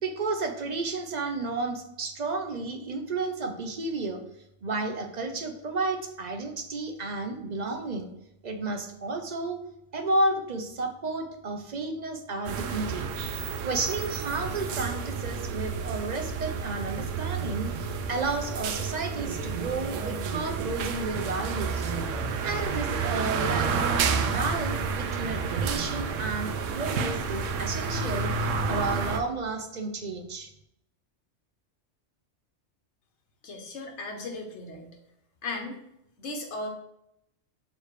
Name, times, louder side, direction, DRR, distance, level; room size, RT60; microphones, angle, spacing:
voice 1, 0.0-4.2 4.6-8.1 8.4-9.6 9.9-13.1 13.6-21.9 22.4-23.8 24.2-26.5 26.8-30.5, right 3 dB, 45° right, 5 dB, 0.7 m, -32 dB
sound 1, 12.5-29.2, right 5 dB, 85° right, 1.0 m, -30 dB
voice 2, 33.4-34.9 35.4-35.8 36.2-36.7, left 2 dB, 65° left, 3 dB, 1.4 m, -36 dB
6.4 x 3.2 x 4.8 m, 0.80 s
omnidirectional pair, 1.3 m